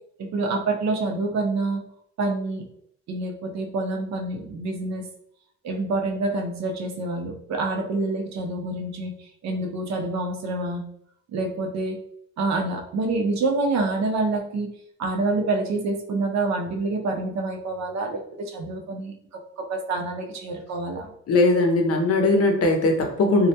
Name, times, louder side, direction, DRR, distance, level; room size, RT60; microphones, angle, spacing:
voice 1, 0.2-1.8 2.2-2.6 3.1-5.1 5.6-10.8 11.3-12.0 12.4-14.7 15.0-19.1 19.6-21.1, right 3 dB, 65° right, 2 dB, 0.6 m, -27 dB
voice 2, 21.3-23.5, left 2 dB, 50° left, 3 dB, 0.6 m, -19 dB
2.3 x 2.1 x 2.7 m, 0.70 s
cardioid pair, 90°, 30 cm